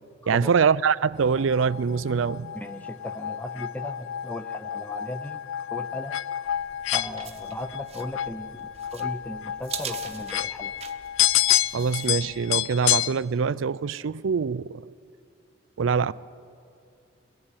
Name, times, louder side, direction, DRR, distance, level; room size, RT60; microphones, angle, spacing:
voice 1, 0.3-2.5 11.7-14.7 15.8-16.1, right 6 dB, 75° right, 0.4 m, -24 dB
sound 1, 1.3-13.1, left 12 dB, 80° left, 0.4 m, -29 dB
voice 2, 2.5-5.4 5.7-6.2 6.9-10.7, left 1 dB, 10° left, 0.6 m, -37 dB
sound 2, 6.4-12.6, right 8 dB, 30° right, 0.9 m, -42 dB
21.5 x 15.5 x 9.0 m
head